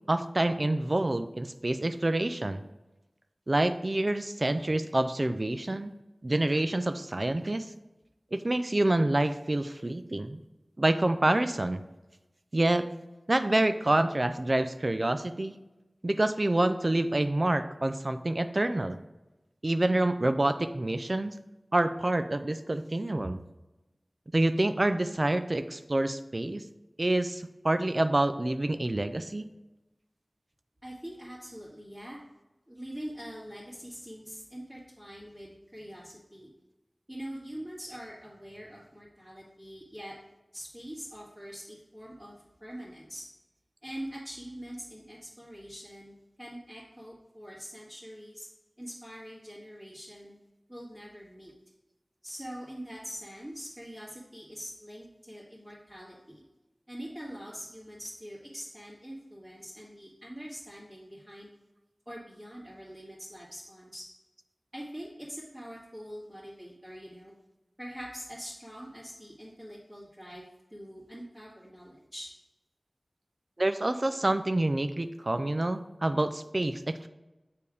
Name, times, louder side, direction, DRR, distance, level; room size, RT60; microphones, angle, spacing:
voice 1, 0.0-2.6 3.5-5.9 6.2-7.7 8.3-10.4 10.8-11.8 12.5-12.9 13.3-15.5 16.0-19.0 19.6-21.4 21.7-23.4 24.3-26.6 27.0-29.4 73.6-77.1, right 1 dB, 45° right, 10 dB, 0.4 m, -27 dB
voice 2, 30.8-32.2 32.7-36.5 37.1-40.1 40.5-42.3 42.6-43.2 43.8-48.5 48.8-50.4 50.7-51.5 52.2-56.4 56.9-61.5 62.1-64.0 64.7-67.3 67.8-70.4 70.7-72.3, equal, 15° right, -11 dB, 2.1 m, -44 dB
6.9 x 3.5 x 4.9 m, 1.0 s
wide cardioid pair, 50°, 0 cm